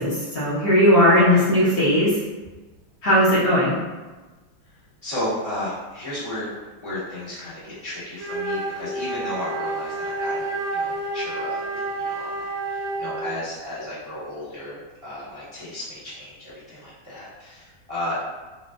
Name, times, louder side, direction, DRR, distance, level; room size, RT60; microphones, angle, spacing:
voice 1, 0.0-2.1 3.0-3.7, equal, 60° left, -8 dB, 1.4 m, -18 dB
voice 2, 5.0-6.5 6.8-18.2, left 1 dB, 10° right, -12 dB, 1.0 m, -34 dB
Wind instrument woodwind instrument, 8.1-13.3, right 2 dB, 75° right, 0.5 m, -29 dB
5.2 x 2.3 x 2.5 m, 1.2 s
omnidirectional pair, 2.2 m